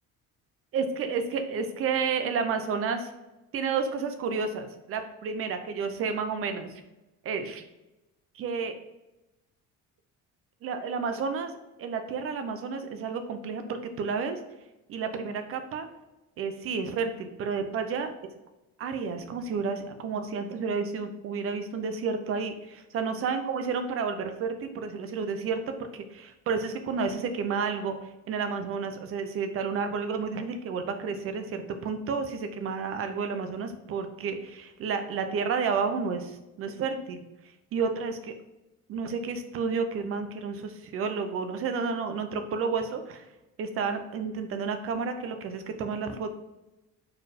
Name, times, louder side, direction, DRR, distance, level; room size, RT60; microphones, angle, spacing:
voice 1, 0.7-3.1 3.5-6.8 7.2-7.6 8.3-8.8 10.6-11.5 11.8-14.4 14.9-15.9 16.4-18.1 18.8-28.0 28.3-37.2 37.7-38.3 38.9-43.2 43.6-46.3, right 5 dB, 40° right, 7 dB, 0.7 m, -31 dB
4.5 x 4.3 x 5.1 m, 0.99 s
cardioid pair, 175°, 33 cm